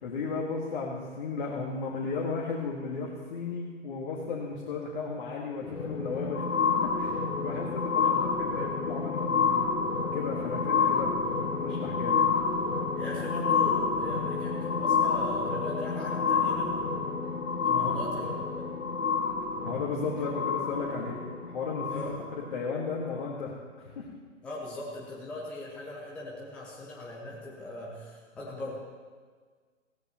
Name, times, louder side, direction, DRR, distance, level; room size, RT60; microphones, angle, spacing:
voice 1, 0.0-9.7 10.1-12.3 17.7-18.0 19.6-21.2 21.5-22.1 22.5-24.1, left 4 dB, 40° left, -3 dB, 1.8 m, -35 dB
sound 1, 5.6-22.5 23.2-23.3, left 5 dB, 80° left, 1.3 m, -29 dB
voice 2, 8.0-8.3 10.7-11.0 13.0-16.8 17.6-18.6 21.9-22.2 24.4-28.7, left 2 dB, 5° left, -4 dB, 0.6 m, -40 dB
16.5 x 14.0 x 3.0 m, 1.6 s
figure-of-eight pair, 130°, 38 cm